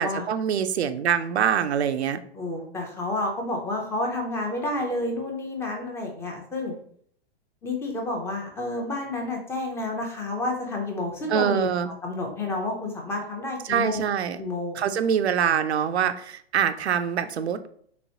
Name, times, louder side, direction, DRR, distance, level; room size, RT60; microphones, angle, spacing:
voice 1, 0.0-2.2 11.3-11.9 13.6-14.4 14.7-17.7, right 8 dB, 90° right, 10 dB, 0.5 m, -24 dB
voice 2, 2.3-6.7 7.6-11.7 12.0-14.0 14.4-14.8, left 2 dB, 10° left, 1 dB, 0.5 m, -30 dB
3.5 x 3.0 x 2.7 m, 0.62 s
hypercardioid pair, 135°, 32 cm